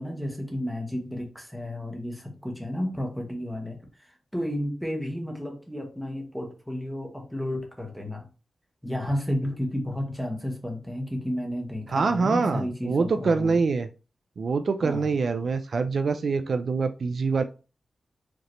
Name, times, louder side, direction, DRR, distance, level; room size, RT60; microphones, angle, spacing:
voice 1, 0.0-3.8 4.0-8.3 8.8-13.6 14.8-15.1, equal, ahead, 2 dB, 1.1 m, -32 dB
voice 2, 11.9-13.9 14.4-17.4, right 4 dB, 55° right, 9 dB, 0.3 m, -25 dB
5.0 x 3.0 x 3.1 m, 0.33 s
wide cardioid pair, 160°, 0 cm